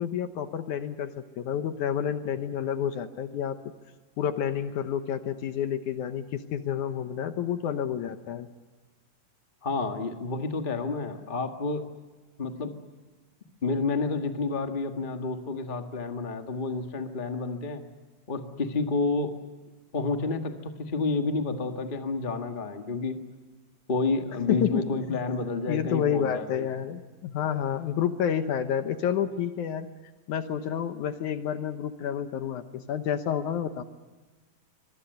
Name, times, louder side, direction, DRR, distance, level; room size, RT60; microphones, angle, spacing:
voice 1, 0.0-3.6 4.2-8.5 24.5-24.8 25.1-25.2 25.7-29.9 30.3-33.8, left 9 dB, 70° left, 9 dB, 2.3 m, -29 dB
voice 2, 9.6-11.8 12.4-12.7 13.6-17.8 18.3-19.4 19.9-23.2 23.9-26.7, left 3 dB, 30° left, 5 dB, 0.9 m, -30 dB
25.0 x 23.0 x 8.0 m, 1.3 s
omnidirectional pair, 3.8 m